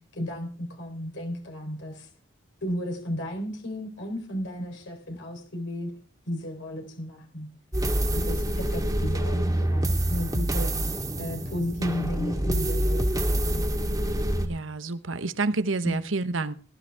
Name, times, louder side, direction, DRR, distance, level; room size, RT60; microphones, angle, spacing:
voice 1, 0.1-2.1 2.6-5.9 6.3-7.5 8.1-10.7 11.2-13.0 13.3-13.6 15.8-16.0, equal, 70° left, 4.0 m, -33 dB
sound 1, 7.7-14.5, right 1 dB, 20° right, 2.0 m, -26 dB
voice 2, 14.4-16.5, right 3 dB, 85° right, 1.1 m, -29 dB
20.0 x 13.5 x 3.6 m
head